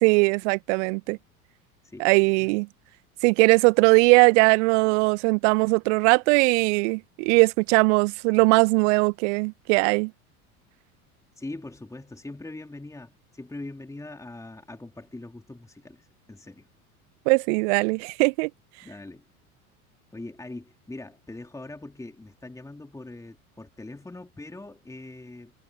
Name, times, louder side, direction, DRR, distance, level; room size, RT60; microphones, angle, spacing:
voice 1, 0.0-1.2 2.0-2.7 3.2-10.1 17.3-18.5, right 30 dB, 50° right, 1.2 m, -20 dB
voice 2, 1.8-2.5 11.4-16.7 18.8-19.3 20.1-25.5, left 2 dB, 5° left, 3.2 m, -42 dB
figure-of-eight pair, 75°, 44 cm